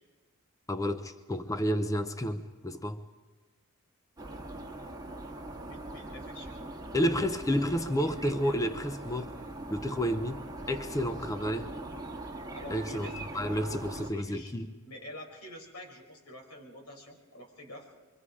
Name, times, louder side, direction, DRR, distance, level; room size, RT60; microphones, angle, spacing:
voice 1, 0.7-3.0 6.9-9.3 9.7-11.7 12.7-13.1 13.3-14.7, equal, 15° left, 0.6 m, -30 dB
sound 1, 4.2-14.1, right 2 dB, 20° right, 1.6 m, -41 dB
voice 2, 5.6-6.7 7.7-8.1 12.5-14.5 14.8-17.9, left 1 dB, 85° left, 5.6 m, -47 dB
26.0 x 24.0 x 4.9 m
head